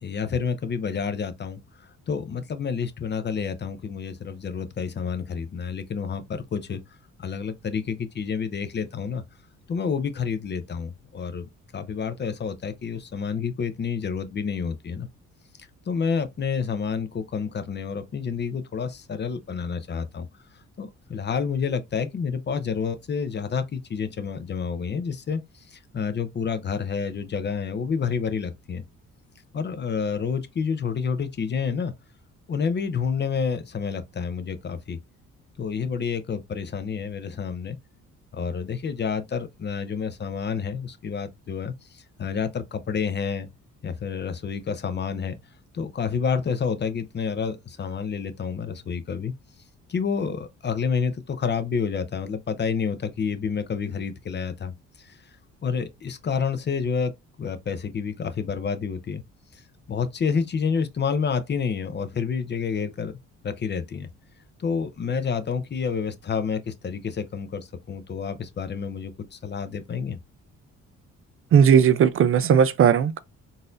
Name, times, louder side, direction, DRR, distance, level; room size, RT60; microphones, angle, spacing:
voice 1, 0.0-6.8 7.2-9.2 9.7-15.1 15.6-20.3 20.8-25.4 25.7-28.8 29.5-31.9 32.5-35.0 35.6-37.8 38.3-43.5 43.8-45.4 45.7-49.3 49.9-54.7 55.0-55.2 55.6-57.1 57.4-59.2 59.5-59.6 59.9-63.1 63.4-64.1 64.6-70.2, left 6 dB, 35° left, 0.6 m, -29 dB
voice 2, 71.5-73.2, right 8 dB, 45° right, 0.4 m, -17 dB
3.9 x 2.6 x 2.4 m
cardioid pair, 90°, 30 cm